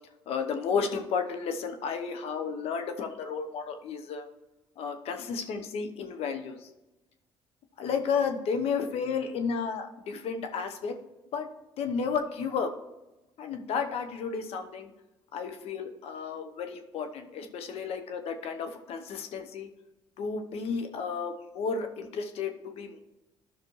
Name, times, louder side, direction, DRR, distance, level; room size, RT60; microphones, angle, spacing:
voice 1, 0.3-4.3 4.8-6.6 7.8-10.9 11.3-11.5 11.8-12.7 13.4-14.9 15.3-19.7 20.2-23.0, left 5 dB, 70° left, 6 dB, 0.9 m, -32 dB
12.0 x 6.0 x 3.1 m, 1.0 s
supercardioid pair, 70°, 11 cm